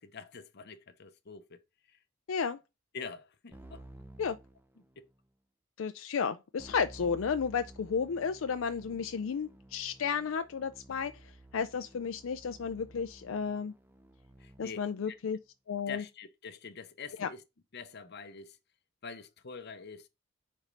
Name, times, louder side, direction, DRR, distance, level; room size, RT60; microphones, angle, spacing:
voice 1, 0.0-1.6 1.9-2.0 2.9-3.8 5.0-5.1 14.4-15.2 15.9-17.4 17.7-18.6 19.0-20.1, left 5 dB, 55° left, 0.7 m, -45 dB
voice 2, 2.3-2.6 4.2-4.4 5.8-11.1 11.5-13.7 14.6-15.4 15.7-16.0 17.2-17.3, left 6 dB, 80° left, 0.4 m, -33 dB
Keyboard (musical), 3.5-5.2 6.6-15.0, right 1 dB, 10° right, 0.7 m, -54 dB
5.0 x 4.3 x 5.2 m
head